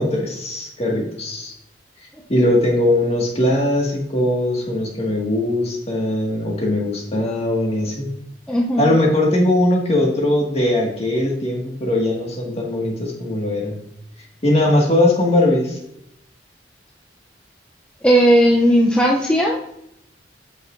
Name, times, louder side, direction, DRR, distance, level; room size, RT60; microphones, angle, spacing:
voice 1, 0.0-1.5 2.3-8.1 8.8-13.8 14.4-15.8, left 1 dB, 35° left, -2 dB, 1.8 m, -20 dB
voice 2, 8.5-8.9 18.0-19.6, equal, 5° left, -2 dB, 0.6 m, -15 dB
8.9 x 6.2 x 2.6 m, 0.80 s
head